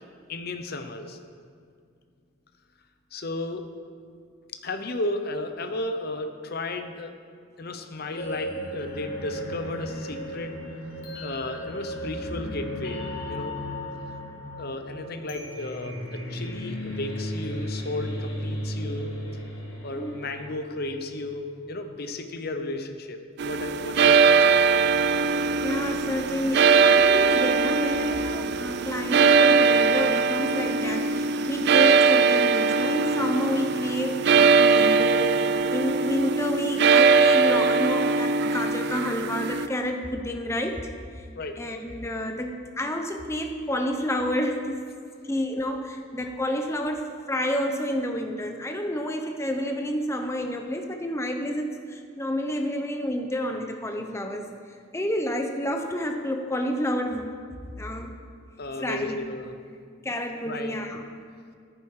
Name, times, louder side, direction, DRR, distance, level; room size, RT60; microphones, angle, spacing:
voice 1, 0.3-1.2 3.1-3.7 4.6-7.1 7.6-10.6 11.2-13.6 14.6-19.1 19.8-24.8 41.3-41.6 58.6-59.5 60.4-60.8, left 2 dB, 50° left, 6 dB, 0.9 m, -34 dB
sound 1, 8.2-21.1, equal, 70° left, 3.3 m, -35 dB
sound 2, 23.4-39.7, right 5 dB, 55° right, 0.4 m, -21 dB
voice 2, 25.6-41.3 41.6-44.8 45.2-57.3 57.8-58.1 58.8-59.2 60.0-61.1, left 1 dB, 15° left, 4 dB, 0.7 m, -30 dB
14.0 x 11.0 x 4.8 m, 2.2 s
head